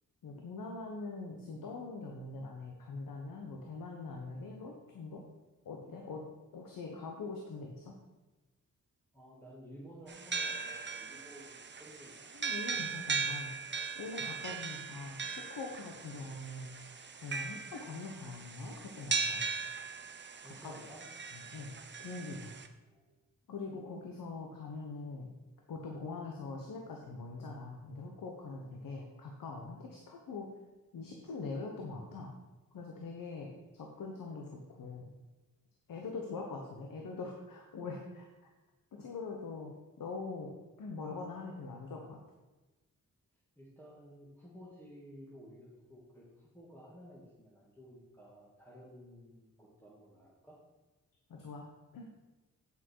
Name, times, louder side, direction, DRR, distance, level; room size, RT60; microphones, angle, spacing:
voice 1, 0.2-5.2 5.6-6.2 6.5-8.0 12.3-13.5 13.9-16.7 17.2-19.4 20.4-20.7 21.5-21.7 22.0-22.5 23.5-25.3 25.7-30.5 30.9-32.3 32.7-35.1 35.9-38.3 38.9-42.2 51.3-51.7 51.9-52.1, left 3 dB, 85° left, 1 dB, 1.2 m, -43 dB
voice 2, 9.1-12.3 14.4-14.7 20.4-21.1 22.8-23.2 28.8-29.0 43.6-50.6, equal, 5° left, -7 dB, 2.1 m, -54 dB
sound 1, 10.1-22.7, right 5 dB, 35° right, 0.7 m, -39 dB
8.8 x 6.3 x 4.7 m, 1.1 s
cardioid pair, 80°, 33 cm